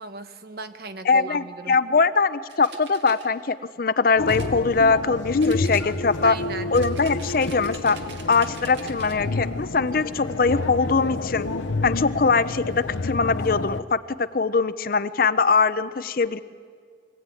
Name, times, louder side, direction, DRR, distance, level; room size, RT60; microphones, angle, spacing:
voice 1, 0.0-1.8 6.2-6.7, right 3 dB, 55° right, 9 dB, 1.1 m, -36 dB
voice 2, 1.1-6.4 6.7-8.0 8.3-11.5 11.8-14.0 14.3-16.4, left 4 dB, 50° left, 14 dB, 0.6 m, -22 dB
sound 1, 2.5-3.3 4.3-5.1 5.4-6.2 6.7-9.2, right 5 dB, 75° right, 2.0 m, -44 dB
sound 2, 4.2-13.8, left 3 dB, 85° left, 0.7 m, -29 dB
24.0 x 16.5 x 9.0 m, 2.1 s
head